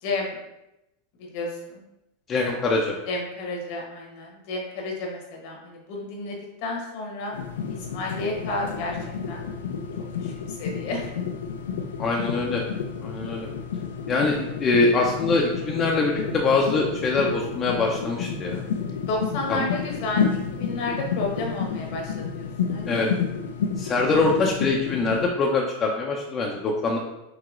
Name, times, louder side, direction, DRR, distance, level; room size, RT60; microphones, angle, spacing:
voice 1, 0.0-0.4 1.3-1.8 3.1-7.3 7.9-9.0 9.3-9.4 10.2-11.1 19.1-23.1, left 2 dB, 60° left, 0 dB, 1.1 m, -31 dB
voice 2, 2.3-2.9 12.0-12.6 13.0-13.5 14.1-18.6 19.5-19.6 22.9-23.1 23.8-27.0, left 3 dB, 30° left, -1 dB, 0.5 m, -23 dB
sound 1, 7.3-25.3, left 6 dB, 85° left, 0.5 m, -30 dB
4.7 x 2.8 x 2.4 m, 0.90 s
hypercardioid pair, 120°, 0 cm